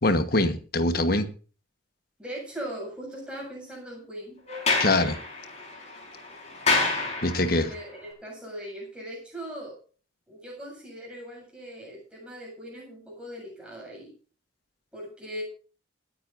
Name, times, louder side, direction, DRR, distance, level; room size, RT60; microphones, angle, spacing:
voice 1, 0.0-1.3 4.8-5.2 7.2-7.7, left 2 dB, 50° left, 9 dB, 1.3 m, -23 dB
voice 2, 2.2-4.4 7.4-9.7 10.3-14.1 14.9-15.4, equal, 5° right, -2 dB, 7.5 m, -39 dB
Sliding door, 4.5-7.7, left 3 dB, 35° left, 4.7 m, -28 dB
27.0 x 9.6 x 2.6 m, 0.38 s
head